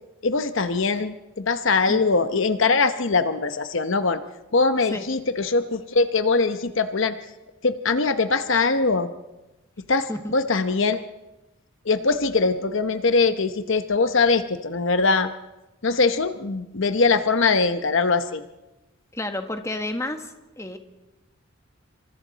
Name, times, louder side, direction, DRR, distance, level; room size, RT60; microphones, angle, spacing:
voice 1, 0.2-4.2 4.5-7.1 7.6-9.1 9.9-11.0 11.9-15.3 15.8-18.4, left 4 dB, 60° left, 10 dB, 0.9 m, -22 dB
voice 2, 19.1-20.8, left 1 dB, 15° left, 6 dB, 1.4 m, -30 dB
28.0 x 25.5 x 4.1 m, 1.0 s
head